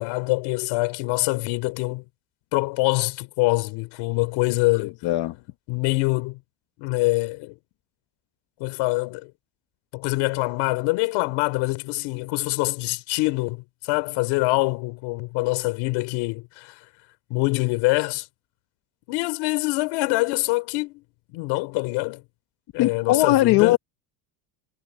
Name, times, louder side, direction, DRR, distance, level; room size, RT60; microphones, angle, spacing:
voice 1, 0.0-2.0 2.5-5.0 5.7-6.4 6.8-7.6 8.6-9.3 9.9-16.8 17.3-18.3 19.1-21.0 21.3-22.2 22.7-23.8, left 23 dB, 80° left, 3.5 m, -25 dB
voice 2, 4.7-5.4 22.8-23.8, left 16 dB, 55° left, 1.2 m, -20 dB
cardioid pair, 165°, 47 cm